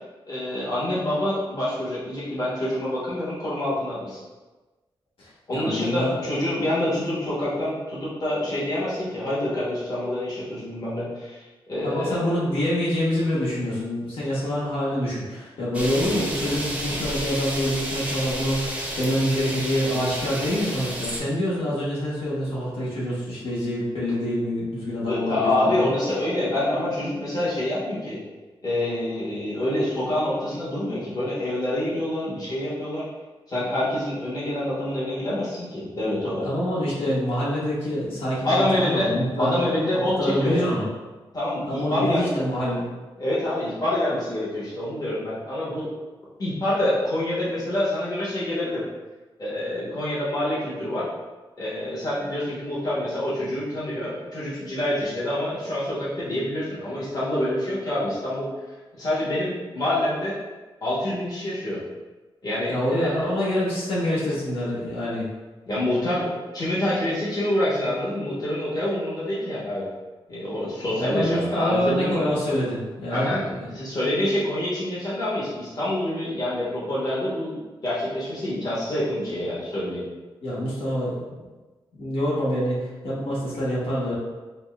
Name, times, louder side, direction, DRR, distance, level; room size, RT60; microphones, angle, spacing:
voice 1, 0.3-4.2 5.5-12.4 25.1-28.2 28.6-33.0 33.5-36.5 38.4-39.1 39.4-40.6 41.3-42.3 43.2-45.9 46.4-48.8 49.4-51.0 51.6-58.5 58.9-60.4 60.8-61.8 62.4-63.7 65.7-69.9 70.3-72.3 73.1-73.4 73.7-77.6 77.8-80.0, left 1 dB, 45° left, -9 dB, 1.1 m, -26 dB
voice 2, 5.2-6.2 11.8-25.9 36.4-39.6 40.2-40.9 41.7-42.9 62.7-65.3 71.0-73.7 80.4-81.3 82.0-84.1, equal, 85° left, -8 dB, 1.1 m, -26 dB
sound 1, 15.7-21.2, right 1 dB, 15° right, 0.6 m, -31 dB
5.1 x 2.1 x 2.4 m, 1.2 s
wide cardioid pair, 130°, 9 cm